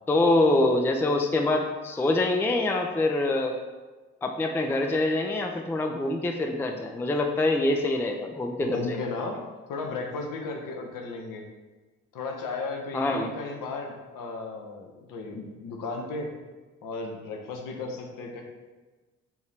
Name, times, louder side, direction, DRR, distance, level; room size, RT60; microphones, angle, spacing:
voice 1, 0.1-3.6 4.2-9.0 12.9-13.3, left 2 dB, 5° left, 3 dB, 0.4 m, -25 dB
voice 2, 8.6-9.4 9.7-11.4 12.1-16.3 16.8-18.4, left 3 dB, 60° left, 2 dB, 0.8 m, -35 dB
4.5 x 2.7 x 3.3 m, 1.3 s
hypercardioid pair, 40°, 36 cm